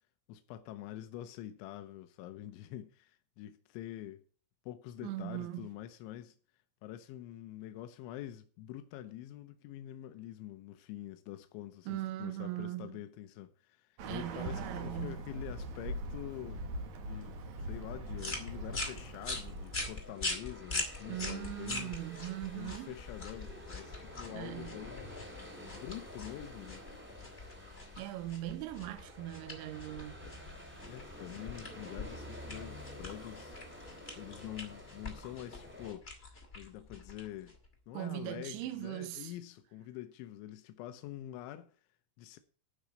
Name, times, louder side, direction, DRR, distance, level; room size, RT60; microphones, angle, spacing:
voice 1, 0.3-4.2 4.7-6.4 6.8-16.7 17.0-21.9 22.5-25.2 25.7-26.9 30.8-33.6 34.2-37.5 37.9-41.7 42.2-42.4, left 13 dB, 85° left, 3.1 m, -46 dB
voice 2, 5.0-5.7 11.9-13.0 14.0-15.2 21.1-23.0 24.3-24.8 27.6-30.2 37.9-39.3, right 15 dB, 85° right, 3.1 m, -40 dB
Bird, 14.0-20.1, right 1 dB, 60° right, 2.0 m, -42 dB
sound 1, 18.2-37.7, left 2 dB, 30° left, 1.2 m, -43 dB
sound 2, 18.8-35.9, equal, 5° right, 1.3 m, -50 dB
11.5 x 5.0 x 8.6 m
omnidirectional pair, 5.3 m